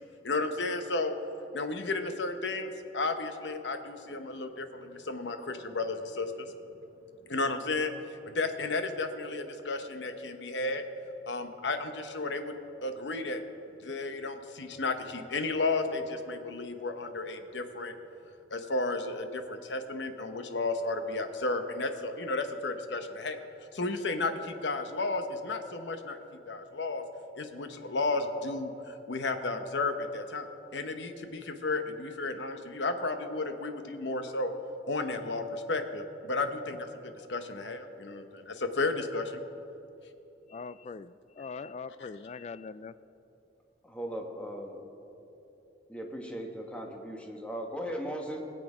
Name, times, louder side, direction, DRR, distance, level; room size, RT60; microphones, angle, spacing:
voice 1, 0.2-1.1 1.5-6.5 7.3-7.9 8.2-10.8 11.3-12.5 12.8-13.4 13.8-17.9 18.5-23.5 23.7-26.2 26.5-27.0 27.4-34.5 34.9-39.4 42.0-42.1, left 3 dB, 75° left, 7 dB, 0.9 m, -33 dB
voice 2, 40.5-43.0, left 4 dB, 35° left, 16 dB, 0.3 m, -42 dB
voice 3, 43.8-44.8 45.9-48.4, equal, 5° left, 1 dB, 1.2 m, -38 dB
20.0 x 7.8 x 4.9 m, 3.0 s
head